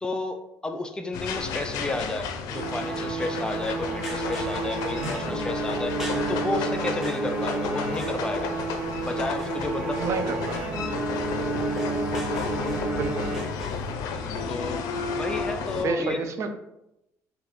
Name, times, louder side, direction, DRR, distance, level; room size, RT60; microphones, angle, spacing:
voice 1, 0.0-6.0 6.3-8.6 9.0-10.1 10.5-10.6 14.2-16.2, left 2 dB, 15° left, 6 dB, 0.3 m, -32 dB
sound 1, 1.1-15.9, left 5 dB, 75° left, 0.5 m, -33 dB
sound 2, 2.5-13.9, equal, 5° right, 0.8 m, -44 dB
sound 3, 2.5-14.0, right 2 dB, 20° right, 1.1 m, -30 dB
voice 2, 10.0-11.1 12.9-13.3 15.7-16.5, right 5 dB, 50° right, 7 dB, 0.5 m, -31 dB
4.0 x 2.6 x 4.0 m, 0.87 s
cardioid pair, 130°, 6 cm